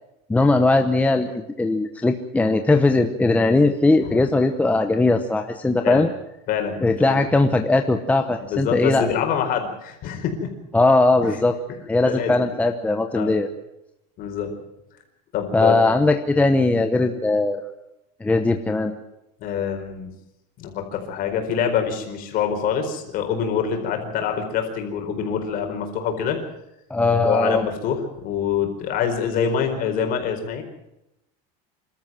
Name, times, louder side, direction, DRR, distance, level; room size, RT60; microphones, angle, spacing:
voice 1, 0.3-1.3 1.6-6.1 6.8-9.1 10.7-11.5 11.9-13.5 15.5-17.6 18.2-19.0 26.9-27.7, left 2 dB, 5° left, 6 dB, 0.9 m, -19 dB
voice 2, 6.5-7.3 8.4-10.5 11.2-11.4 12.0-12.3 13.1-13.4 14.2-14.5 15.3-16.0 19.4-20.1 20.6-26.4 27.2-30.6, left 7 dB, 45° left, 4 dB, 4.5 m, -25 dB
27.0 x 13.0 x 7.6 m, 0.88 s
cardioid pair, 155°, 20 cm